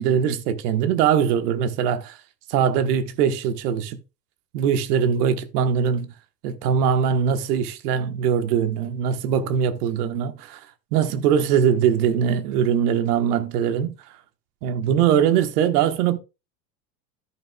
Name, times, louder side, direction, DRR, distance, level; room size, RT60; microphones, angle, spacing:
voice 1, 0.0-2.2 2.5-4.0 4.5-6.1 6.4-10.6 10.9-13.9 14.6-16.2, right 8 dB, 65° right, 1.3 m, -21 dB
14.0 x 6.4 x 2.3 m
hypercardioid pair, 80°, 49 cm